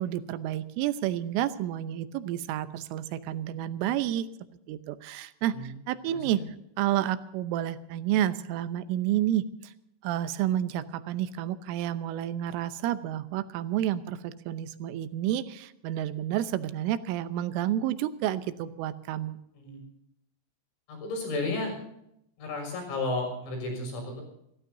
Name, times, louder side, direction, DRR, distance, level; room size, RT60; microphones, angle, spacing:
voice 1, 0.0-4.3 4.7-6.4 6.8-9.4 10.0-19.4, right 12 dB, 85° right, 11 dB, 3.4 m, -30 dB
voice 2, 5.4-5.8 6.1-6.5 19.5-19.8 20.9-21.7 22.4-24.2, left 2 dB, 85° left, 2 dB, 8.8 m, -33 dB
29.5 x 15.0 x 2.7 m, 0.78 s
omnidirectional pair, 5.6 m